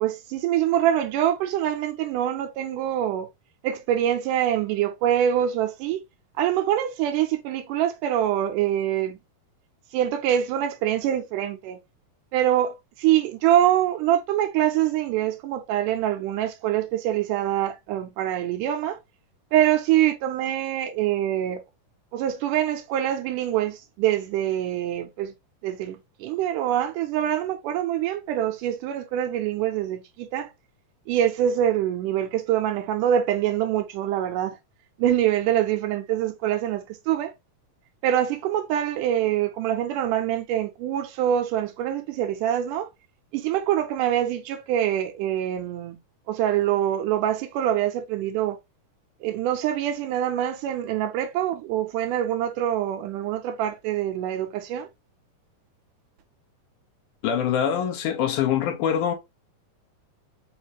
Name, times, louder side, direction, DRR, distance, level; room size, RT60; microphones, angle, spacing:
voice 1, 0.0-3.3 3.6-6.0 6.4-9.2 9.9-11.8 12.3-19.0 19.5-21.6 22.1-25.3 25.6-30.5 31.1-34.6 35.0-37.3 38.0-42.9 43.3-46.0 46.3-48.6 49.2-54.9, right 11 dB, 80° right, 2.1 m, -24 dB
voice 2, 57.2-59.1, left 9 dB, 75° left, 2.1 m, -24 dB
5.5 x 2.5 x 2.9 m
omnidirectional pair, 3.9 m